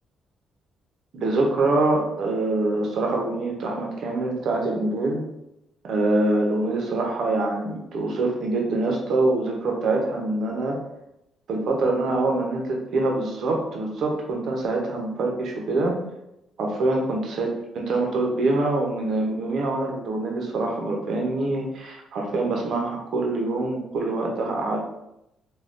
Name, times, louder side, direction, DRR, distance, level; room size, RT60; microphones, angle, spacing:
voice 1, 1.1-5.2 5.8-10.8 11.5-15.9 16.6-17.5 17.8-24.8, right 2 dB, 55° right, 0 dB, 0.6 m, -25 dB
2.5 x 2.2 x 3.4 m, 0.85 s
cardioid pair, 155°, 0 cm